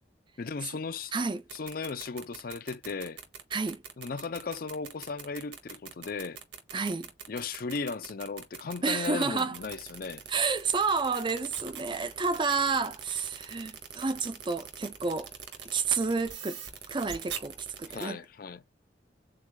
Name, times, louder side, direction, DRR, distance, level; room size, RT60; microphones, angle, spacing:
voice 1, 0.4-1.1 1.5-3.2 4.0-6.4 7.3-10.2 17.9-18.6, left 4 dB, 55° left, 0.5 m, -36 dB
voice 2, 1.1-1.4 3.5-3.8 6.7-7.1 8.8-9.6 10.3-15.3 15.7-16.6 16.9-18.2, right 4 dB, 25° right, 0.5 m, -30 dB
sound 1, 1.4-18.0, right 8 dB, 80° right, 1.3 m, -42 dB
7.5 x 2.5 x 2.2 m
head